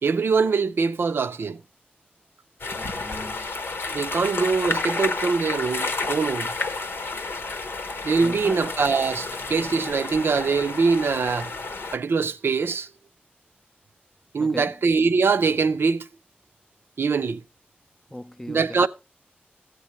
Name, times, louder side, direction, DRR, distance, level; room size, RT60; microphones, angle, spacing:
voice 1, 0.0-1.6 3.9-6.5 8.0-11.5 11.9-12.9 14.3-16.1 17.0-17.4 18.5-18.9, right 4 dB, 85° right, 0.5 m, -23 dB
sound 1, 2.6-12.0, left 3 dB, 90° left, 1.0 m, -31 dB
voice 2, 2.8-3.5 8.2-8.7 14.4-14.7 18.1-18.9, left 1 dB, 10° left, 0.4 m, -38 dB
14.5 x 8.1 x 3.0 m
wide cardioid pair, 65°, 4 cm